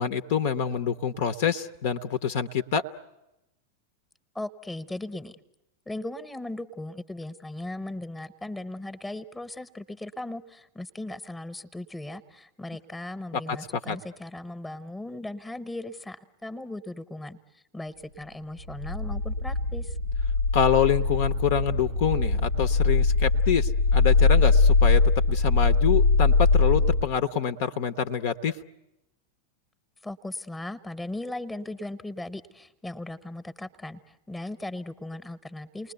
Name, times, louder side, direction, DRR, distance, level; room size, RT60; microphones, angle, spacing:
voice 1, 0.0-2.8 13.9-14.0 20.5-25.0 25.3-28.6, left 8 dB, 50° left, 12 dB, 0.8 m, -26 dB
voice 2, 4.3-5.4 5.9-20.0 30.0-35.9, left 1 dB, 5° left, 13 dB, 1.1 m, -38 dB
sound 1, 18.7-27.1, left 3 dB, 80° left, 1.1 m, -22 dB
29.5 x 20.5 x 8.0 m, 0.92 s
figure-of-eight pair, 90°, 0 cm